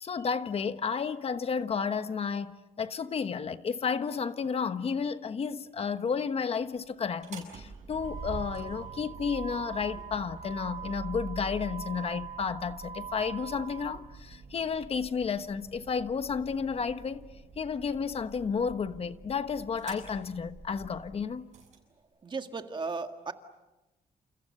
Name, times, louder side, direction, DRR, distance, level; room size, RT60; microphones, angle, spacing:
voice 1, 0.0-17.2 17.6-21.5, left 6 dB, 40° left, 1.2 m, -32 dB
Motor vehicle (road), 7.1-21.8, right 6 dB, 50° right, 7.8 m, -43 dB
voice 2, 22.2-23.3, right 4 dB, 30° right, 2.0 m, -35 dB
30.0 x 29.0 x 6.7 m
cardioid pair, 140°, 15 cm